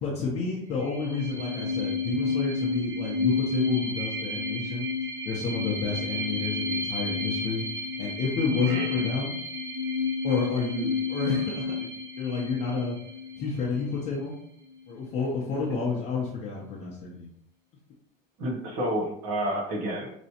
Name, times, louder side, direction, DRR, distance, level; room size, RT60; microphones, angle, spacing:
voice 1, 0.0-4.9 5.2-7.7 8.0-9.4 10.2-11.9 12.2-13.0 13.4-14.3 14.9-17.3, left 4 dB, 35° left, -4 dB, 0.8 m, -30 dB
sound 1, 0.7-14.1, left 3 dB, 20° right, 0.7 m, -31 dB
voice 2, 8.7-9.0 18.4-20.1, right 1 dB, 60° right, 1 dB, 1.2 m, -30 dB
5.2 x 3.0 x 2.9 m, 0.74 s
cardioid pair, 180°, 18 cm